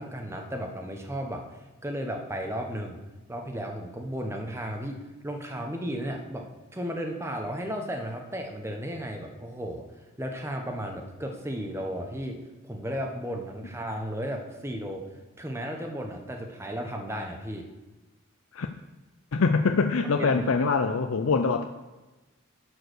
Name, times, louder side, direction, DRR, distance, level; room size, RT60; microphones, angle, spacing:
voice 1, 0.0-1.4 1.8-3.0 3.3-5.0 5.2-6.4 6.7-9.8 10.2-12.4 12.6-15.0 15.4-17.7 20.0-20.3 20.6-20.7, equal, 15° right, 3 dB, 1.1 m, -34 dB
voice 2, 19.3-21.6, left 4 dB, 80° left, 6 dB, 0.5 m, -24 dB
11.5 x 4.8 x 6.3 m, 1.1 s
head